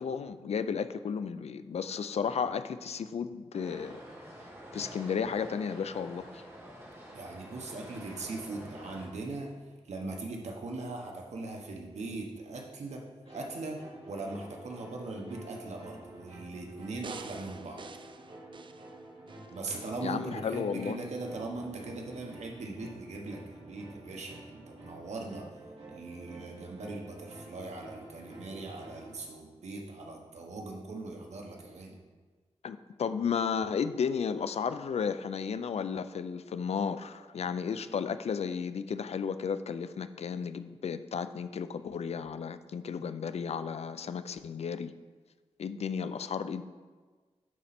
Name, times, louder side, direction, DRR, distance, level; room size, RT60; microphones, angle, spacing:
voice 1, 0.0-4.0 4.7-6.4 20.0-21.0 32.6-44.9 45.6-46.6, left 6 dB, 70° left, 12 dB, 0.4 m, -33 dB
sound 1, 3.5-9.1, equal, 20° right, 1.5 m, -48 dB
voice 2, 7.1-9.5 9.8-13.1 13.3-17.8 19.5-25.5 25.9-32.0, right 2 dB, 85° right, 0 dB, 1.2 m, -40 dB
sound 2, 13.3-29.2, right 1 dB, 70° right, 2.4 m, -50 dB
sound 3, 17.0-19.5 20.0-20.1, right 5 dB, 45° right, 0.4 m, -47 dB
11.0 x 4.3 x 4.2 m, 1.4 s
wide cardioid pair, 110°, 11 cm